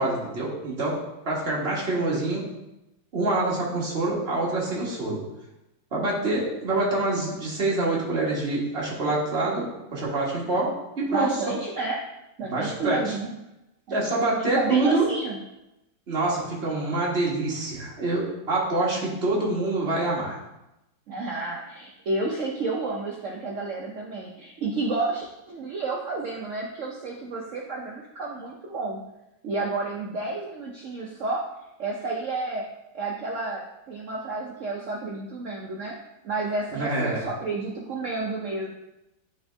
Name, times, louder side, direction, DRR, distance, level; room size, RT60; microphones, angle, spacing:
voice 1, 0.0-2.5 3.1-5.2 5.9-11.4 12.4-13.2 13.9-15.1 16.1-20.4 36.7-37.2, right 2 dB, 35° right, -5 dB, 1.6 m, -26 dB
voice 2, 11.1-12.0 12.4-13.3 14.4-15.4 21.1-29.0 29.4-31.4 31.8-32.6 32.9-36.0 36.2-38.7, right 3 dB, 85° right, -1 dB, 0.6 m, -31 dB
8.9 x 3.5 x 3.4 m, 0.93 s
omnidirectional pair, 2.1 m